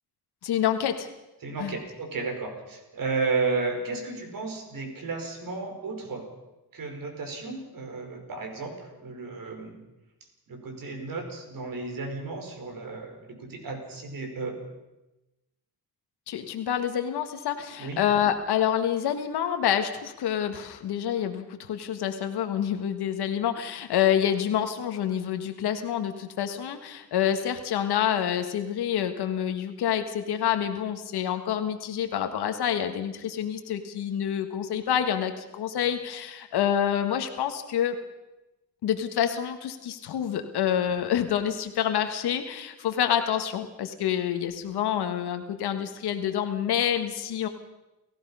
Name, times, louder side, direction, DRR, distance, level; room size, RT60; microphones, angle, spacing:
voice 1, 0.4-1.1 1.6-1.8 16.3-38.0 38.8-47.5, left 9 dB, 90° left, 7 dB, 1.6 m, -27 dB
voice 2, 1.4-6.3 6.7-9.8 10.5-14.5 17.8-18.0, right 4 dB, 60° right, 4 dB, 5.2 m, -33 dB
29.5 x 15.5 x 5.6 m, 0.99 s
cardioid pair, 120°, 38 cm